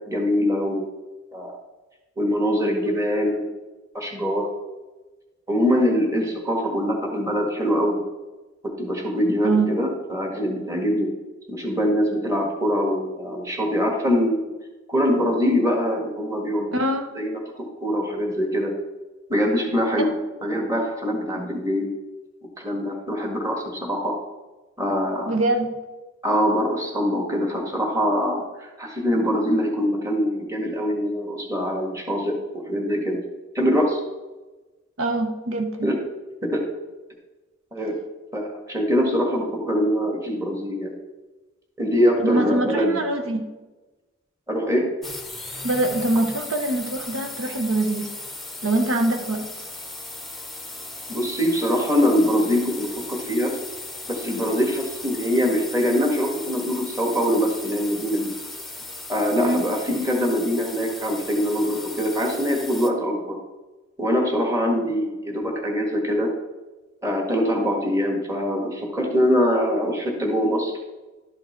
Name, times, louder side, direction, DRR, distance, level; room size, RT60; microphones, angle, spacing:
voice 1, 0.1-0.9 1.3-1.5 2.2-3.5 3.9-4.5 5.5-8.0 8.8-11.1 11.5-14.4 14.9-16.8 17.1-18.7 19.3-20.1 20.4-21.9 22.6-24.1 24.8-25.3 26.2-32.4 32.7-33.2 33.5-34.0 35.8-36.0 36.4-36.6 37.7-37.9 38.3-40.9 41.8-43.0 44.5-44.9 51.1-53.6 54.1-58.3 59.1-63.4 64.0-66.3 67.0-70.7, equal, 15° right, 1 dB, 1.6 m, -23 dB
voice 2, 16.7-17.1 20.0-20.1 25.3-25.7 35.0-35.9 42.2-43.4 45.6-48.1 48.6-49.5 59.4-59.7, right 2 dB, 85° right, 5 dB, 1.0 m, -23 dB
sound 1, 45.0-62.9, left 2 dB, ahead, 0.8 m, -37 dB
12.0 x 5.1 x 4.5 m, 1.2 s
head